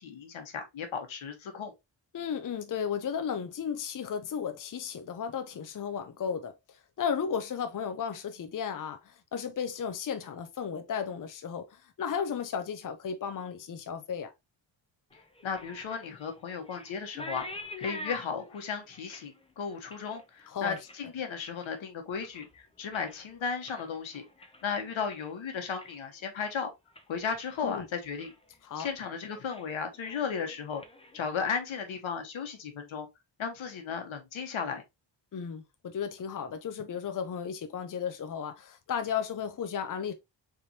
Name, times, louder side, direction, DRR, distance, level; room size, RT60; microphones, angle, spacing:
voice 1, 0.0-1.7 15.4-17.4 17.8-26.7 27.1-28.3 28.7-30.8 31.1-33.1 33.4-34.8, left 6 dB, 80° left, 1.3 m, -35 dB
voice 2, 2.1-6.5 7.0-14.3 20.5-20.8 27.6-27.9 28.6-28.9 35.3-40.1, left 7 dB, 45° left, 0.7 m, -34 dB
sound 1, 15.1-21.8 22.1-22.6 22.9-25.3 25.6-26.1 26.4-26.5 26.9-27.7 28.0-28.4 28.8-29.0 29.3-29.7 29.9-31.8, left 1 dB, 10° left, 0.9 m, -47 dB
4.2 x 3.5 x 2.9 m
cardioid pair, 90°, 46 cm